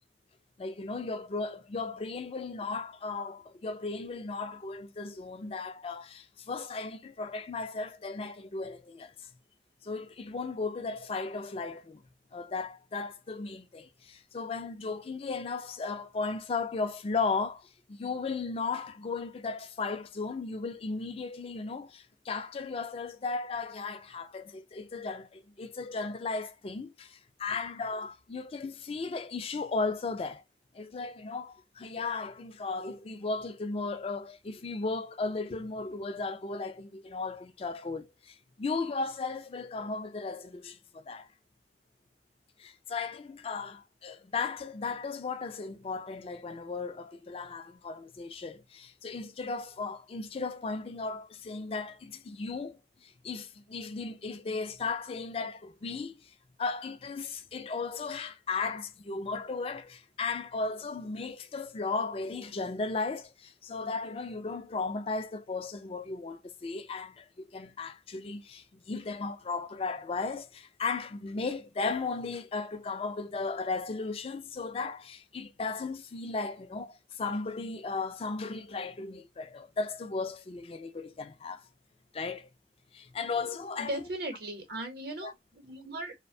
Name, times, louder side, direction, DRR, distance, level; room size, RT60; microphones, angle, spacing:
voice 1, 0.6-9.3 9.8-12.0 12.3-30.4 30.7-41.3 42.6-81.7 82.1-82.5 82.9-84.0 85.2-85.3, left 4 dB, 35° left, 0.3 m, -36 dB
voice 2, 83.8-86.1, right 1 dB, 60° right, 0.8 m, -38 dB
2.5 x 2.1 x 2.6 m
head